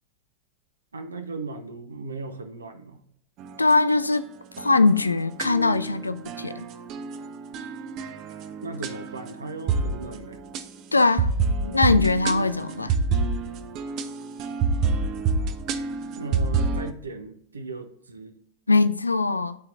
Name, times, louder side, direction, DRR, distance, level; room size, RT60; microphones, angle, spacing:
voice 1, 0.9-3.0 8.6-10.4 16.1-18.4, right 3 dB, 75° right, 0.7 m, -37 dB
sound 1, 3.4-4.2 4.5-16.9, right 4 dB, 40° right, 0.6 m, -28 dB
voice 2, 3.6-4.3 4.6-6.7 10.9-11.3 11.6-13.0 18.7-19.6, left 3 dB, 80° left, 0.3 m, -21 dB
11.5 x 4.4 x 2.5 m
figure-of-eight pair, 90°, 0 cm